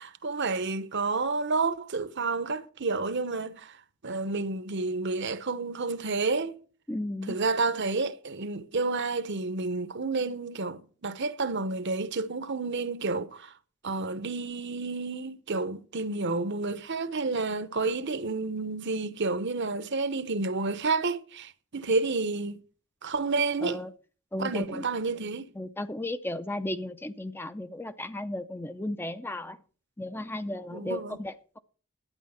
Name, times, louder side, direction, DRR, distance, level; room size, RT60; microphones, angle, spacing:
voice 1, 0.0-3.8 4.0-6.6 7.3-13.5 13.8-22.6 23.0-23.8 24.4-25.5 30.7-31.2, right 3 dB, 55° right, 0.9 m, -30 dB
voice 2, 6.9-7.4 23.6-23.9 24.3-24.9 25.5-29.6 30.0-31.6, left 1 dB, 10° left, 0.5 m, -35 dB
12.0 x 9.4 x 5.7 m
head